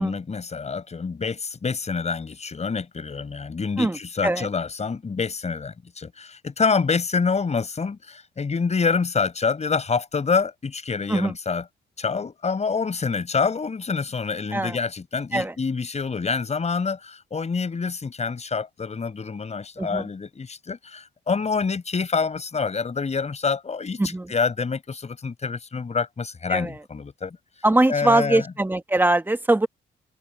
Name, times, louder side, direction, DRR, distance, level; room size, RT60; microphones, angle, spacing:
voice 1, 0.0-11.6 12.0-24.0 24.3-27.4 27.9-28.4, left 5 dB, 35° left, 5.1 m, -27 dB
voice 2, 19.8-20.1 24.0-24.3 26.5-26.8 27.6-29.7, right 2 dB, 10° right, 1.5 m, -22 dB
cardioid pair, 90°, 20 cm